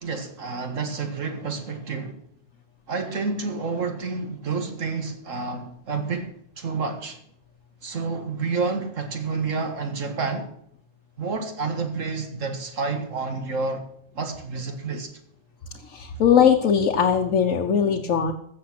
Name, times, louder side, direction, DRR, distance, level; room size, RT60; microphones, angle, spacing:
voice 1, 0.0-2.2 2.9-7.2 7.8-10.5 11.2-13.8 14.1-15.1, right 4 dB, 80° right, 2.1 m, -29 dB
voice 2, 15.9-18.3, left 7 dB, 85° left, 1.3 m, -20 dB
14.5 x 7.3 x 5.9 m
omnidirectional pair, 1.3 m